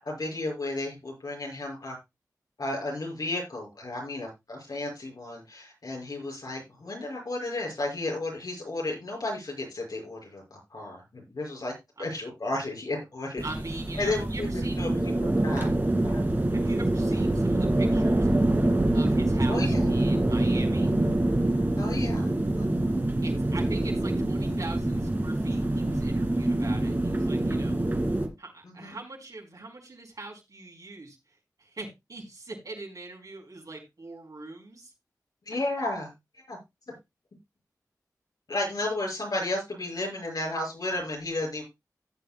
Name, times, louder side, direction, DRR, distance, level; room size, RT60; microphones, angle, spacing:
voice 1, 0.0-2.0 2.6-11.7 12.0-13.4 14.0-15.7 16.0-16.2 19.5-19.9 21.8-22.7 28.6-29.0 35.5-36.1 36.3-36.6 38.5-41.6, left 2 dB, 75° left, 0 dB, 5.9 m, -33 dB
sound 1, 13.4-28.3, right 1 dB, 30° right, 2.4 m, -25 dB
voice 2, 13.4-14.8 16.5-18.3 18.9-20.9 23.2-27.8 28.4-34.9, right 2 dB, 65° right, 1 dB, 4.4 m, -42 dB
15.5 x 8.5 x 2.3 m, 0.22 s
wide cardioid pair, 55°, 7 cm